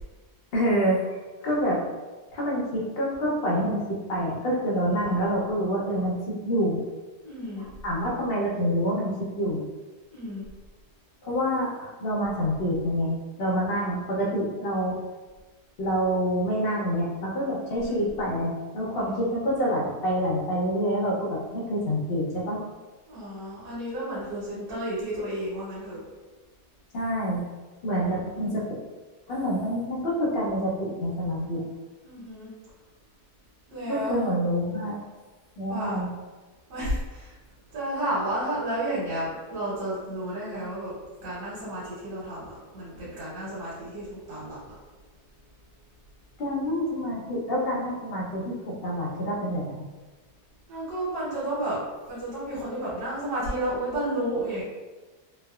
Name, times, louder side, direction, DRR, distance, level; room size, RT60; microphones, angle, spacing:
voice 1, 0.5-1.2 1.4-1.8 2.3-6.8 7.8-9.6 11.2-13.1 13.4-15.0 15.8-22.6 26.9-27.5 27.8-28.6 29.3-31.6 33.9-35.0 35.6-36.1 46.4-49.8, equal, 65° left, -4 dB, 0.6 m, -27 dB
voice 2, 7.2-7.7 10.1-10.4 17.7-18.0 18.9-19.3 23.1-26.0 28.0-28.6 32.0-32.5 33.7-34.3 35.7-36.0 36.7-37.3 37.7-40.9 41.2-44.8 50.7-51.8 52.1-54.6, right 1 dB, 85° right, -10 dB, 1.5 m, -32 dB
3.2 x 2.0 x 2.3 m, 1.3 s
omnidirectional pair, 1.7 m